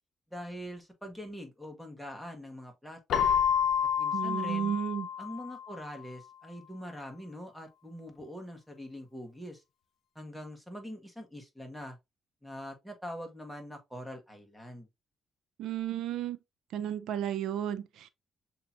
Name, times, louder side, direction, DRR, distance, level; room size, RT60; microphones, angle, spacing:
voice 1, 0.3-3.3 4.0-4.7 5.2-9.6 10.1-12.0 12.4-14.9, equal, ahead, 1.6 m, -43 dB
Keyboard (musical), 3.1-5.8, left 8 dB, 70° left, 0.7 m, -29 dB
voice 2, 4.1-5.1 15.6-16.4 16.7-18.1, right 10 dB, 80° right, 0.6 m, -33 dB
6.6 x 2.9 x 2.7 m
cardioid pair, 90°, 0 cm